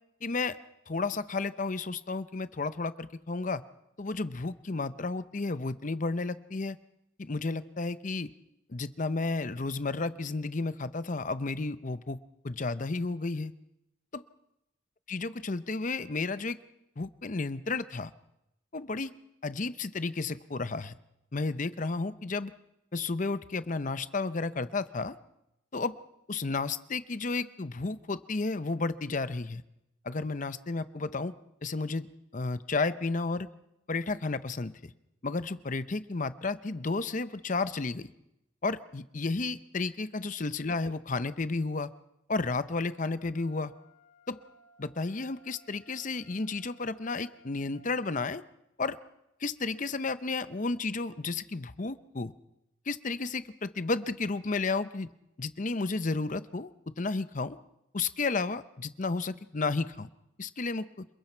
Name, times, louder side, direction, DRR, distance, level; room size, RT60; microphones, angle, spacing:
voice 1, 0.2-0.6 0.9-3.6 4.0-6.8 7.2-8.3 8.7-12.2 12.4-13.5 14.1-14.2 15.1-16.6 17.0-18.1 18.7-19.1 19.4-20.9 21.3-22.5 22.9-25.2 25.7-25.9 26.3-29.6 30.0-31.3 31.6-33.5 33.9-34.9 35.2-38.1 38.6-41.9 42.3-43.7 44.3-44.4 44.8-48.4 48.8-49.0 49.4-52.3 52.9-55.1 55.4-56.7 57.0-57.6 57.9-60.1 60.4-61.1, left 3 dB, 40° left, 14 dB, 0.7 m, -32 dB
Wind instrument woodwind instrument, 43.3-47.9, left 1 dB, 80° left, 2.5 m, -61 dB
28.0 x 21.5 x 4.5 m, 0.87 s
head